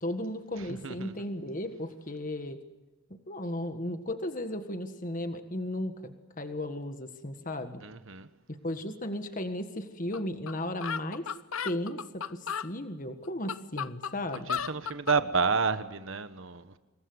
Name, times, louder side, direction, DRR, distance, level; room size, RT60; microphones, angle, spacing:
voice 1, 0.0-2.6 3.3-7.8 8.5-11.3 11.6-14.5, left 1 dB, 35° left, 1.6 m, -35 dB
voice 2, 0.6-1.1 7.8-8.3 14.5-16.8, right 5 dB, 60° right, 1.3 m, -30 dB
sound 1, 10.1-10.2 10.5-10.6 10.8-12.7 13.2-15.2, left 7 dB, 70° left, 0.7 m, -34 dB
26.5 x 22.0 x 8.1 m
head